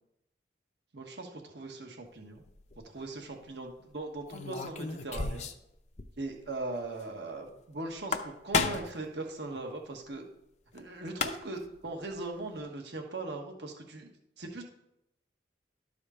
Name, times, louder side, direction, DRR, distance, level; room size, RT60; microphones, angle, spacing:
voice 1, 0.9-2.4 2.8-5.5 6.2-10.2 10.7-14.1 14.4-14.6, right 2 dB, 70° right, 2 dB, 1.3 m, -39 dB
sound 1, 2.5-2.8 4.3-5.7 6.0-6.1 6.4-6.5 7.9-9.0 10.8-10.9 11.1-11.7, left 4 dB, 40° left, 0.6 m, -32 dB
12.0 x 5.0 x 4.2 m, 0.82 s
head